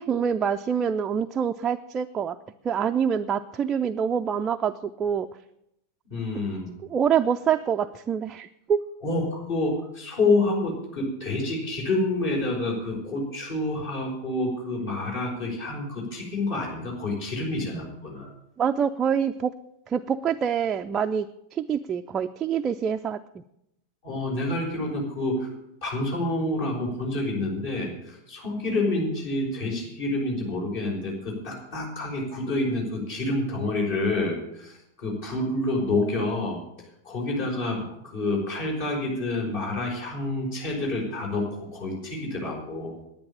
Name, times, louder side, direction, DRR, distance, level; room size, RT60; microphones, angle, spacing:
voice 1, 0.0-2.4 2.6-5.3 6.9-8.8 18.6-19.5 19.9-21.3 21.5-23.2, right 7 dB, 25° right, 6 dB, 0.5 m, -25 dB
voice 2, 6.1-6.7 9.0-18.3 24.0-25.5 25.8-36.6 37.0-43.0, left 2 dB, 50° left, -1 dB, 5.1 m, -28 dB
10.5 x 9.5 x 8.5 m, 0.81 s
figure-of-eight pair, 90°, 0 cm